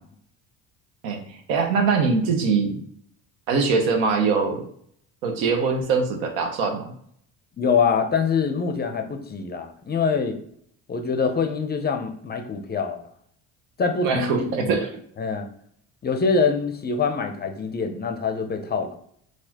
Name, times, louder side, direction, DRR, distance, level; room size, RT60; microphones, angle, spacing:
voice 1, 1.0-2.8 3.5-4.6 5.2-6.9 14.0-14.9, right 4 dB, 90° right, 5 dB, 0.8 m, -22 dB
voice 2, 7.6-10.4 10.9-13.0 13.8-14.8 15.2-15.5 16.0-19.0, left 5 dB, 25° left, 6 dB, 0.4 m, -24 dB
4.1 x 2.4 x 2.8 m, 0.65 s
supercardioid pair, 95°, 40 cm